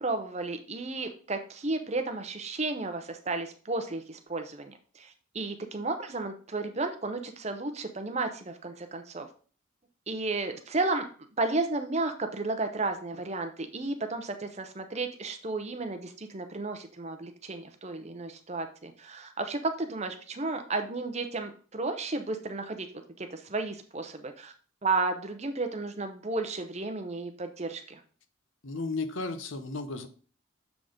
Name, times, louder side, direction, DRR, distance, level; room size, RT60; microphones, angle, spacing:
voice 1, 0.0-9.3 10.1-11.1 11.4-22.9 23.2-24.5 24.8-28.0, right 3 dB, 30° right, 7 dB, 0.7 m, -33 dB
voice 2, 28.6-30.1, left 3 dB, 70° left, 9 dB, 0.8 m, -34 dB
7.1 x 3.9 x 5.0 m, 0.41 s
head